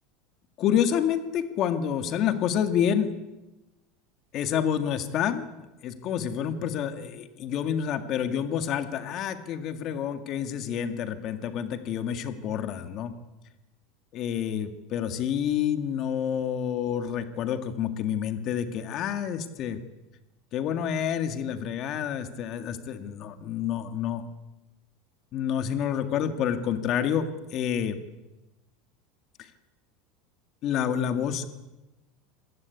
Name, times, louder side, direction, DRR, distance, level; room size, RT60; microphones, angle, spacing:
voice 1, 0.6-3.1 4.3-5.5 5.8-13.1 14.1-19.8 20.5-24.2 25.3-28.0 30.6-31.5, left 9 dB, 35° left, 9 dB, 2.0 m, -28 dB
26.5 x 19.0 x 8.5 m, 1.0 s
supercardioid pair, 170°, 0 cm